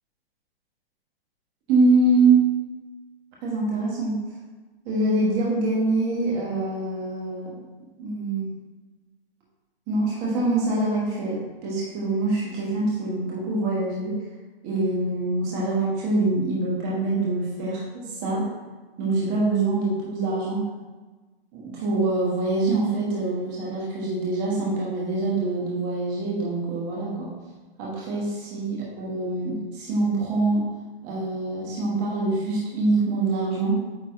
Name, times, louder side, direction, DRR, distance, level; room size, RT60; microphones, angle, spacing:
voice 1, 1.7-2.4 3.4-4.2 4.8-7.5 8.0-8.5 9.9-14.2 14.6-18.5 19.0-20.6 21.5-27.3 27.8-30.6 31.0-33.8, right 2 dB, 20° right, -5 dB, 1.5 m, -24 dB
8.9 x 3.9 x 3.8 m, 1.2 s
hypercardioid pair, 170°, 32 cm